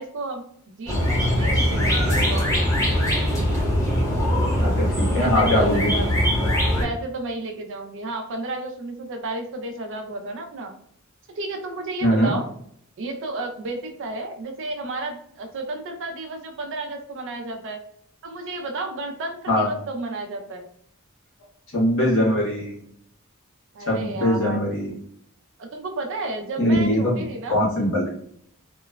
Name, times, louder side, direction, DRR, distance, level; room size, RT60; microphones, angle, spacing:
voice 1, 0.0-2.5 5.2-6.1 6.8-10.7 11.3-12.5 13.0-17.8 18.2-20.6 23.7-24.6 25.6-27.6, right 2 dB, 60° right, 5 dB, 0.4 m, -32 dB
sound 1, 0.9-6.8, equal, 15° left, 0.7 m, -21 dB
voice 2, 4.6-6.0 12.0-12.4 19.5-19.7 21.7-22.8 23.8-24.9 26.6-27.2 27.5-28.1, equal, 65° left, -5 dB, 1.4 m, -21 dB
2.9 x 2.1 x 2.3 m, 0.67 s
head